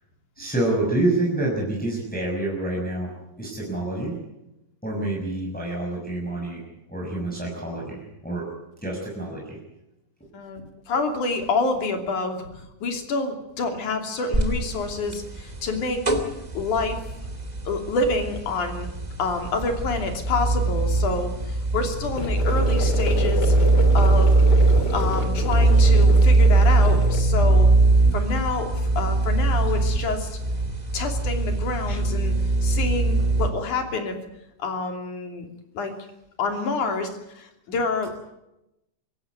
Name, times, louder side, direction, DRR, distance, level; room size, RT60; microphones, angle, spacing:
voice 1, 0.4-3.1 3.4-4.1 4.8-6.6 6.9-8.4 8.8-9.6, right 2 dB, ahead, -3 dB, 6.0 m, -27 dB
voice 2, 10.3-16.1 16.5-17.0 17.7-18.9 19.2-23.5 23.9-24.4 24.9-27.7 28.1-30.4 30.9-32.3 32.6-34.2 34.6-35.5 35.7-35.9 36.4-38.2, left 3 dB, 70° left, 5 dB, 4.4 m, -28 dB
sound 1, 14.3-33.5, right 3 dB, 15° right, 2.0 m, -21 dB
sound 2, 22.1-27.2, left 4 dB, 35° left, 3.3 m, -30 dB
25.0 x 17.0 x 9.5 m, 0.90 s
omnidirectional pair, 3.6 m